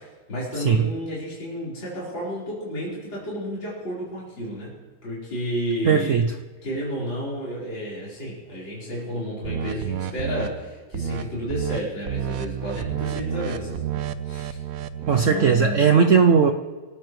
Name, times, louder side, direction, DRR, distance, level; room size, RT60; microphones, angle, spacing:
voice 1, 0.0-4.7 5.0-6.2 6.6-14.0 14.2-14.6 15.0-15.9, equal, 70° left, -8 dB, 5.2 m, -31 dB
voice 2, 5.8-6.3 15.1-16.5, right 6 dB, 80° right, 5 dB, 0.7 m, -17 dB
sound 1, 9.4-10.5 10.9-11.2 11.5-11.8 12.1-15.4, right 8 dB, 65° right, 0.9 m, -30 dB
25.5 x 13.5 x 3.2 m, 1.4 s
omnidirectional pair, 2.1 m